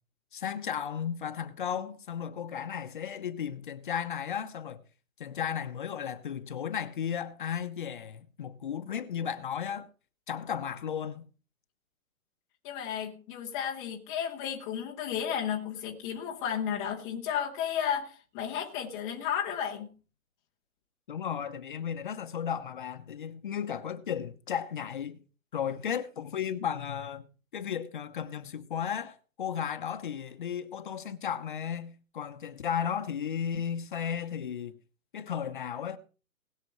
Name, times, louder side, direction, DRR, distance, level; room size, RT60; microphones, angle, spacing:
voice 1, 0.3-4.8 5.2-9.9 10.3-11.3 21.1-25.2 25.5-27.3 27.5-34.7 35.1-36.0, left 8 dB, 35° left, 0.9 m, -34 dB
voice 2, 12.6-19.9, left 8 dB, 10° left, 0.8 m, -33 dB
20.0 x 6.8 x 4.6 m
hypercardioid pair, 160°, 44 cm